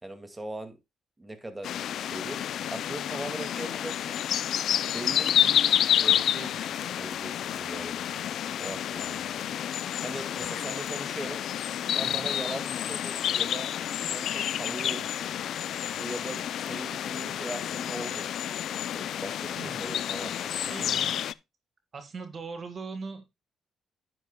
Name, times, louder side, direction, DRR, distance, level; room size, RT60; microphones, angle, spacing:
voice 1, 0.0-0.8 1.2-2.4 2.7-4.2 4.9-9.6 10.0-11.4 12.0-13.7 14.1-15.3 16.0-18.3 18.9-20.9, right 1 dB, 15° right, 8 dB, 2.2 m, -40 dB
sound 1, 1.6-21.3, left 10 dB, 70° left, 0.4 m, -29 dB
voice 2, 19.6-19.9 20.5-21.2 21.9-23.3, right 4 dB, 45° right, 8 dB, 1.7 m, -40 dB
10.5 x 10.0 x 2.3 m, 0.23 s
cardioid pair, 90°, 0 cm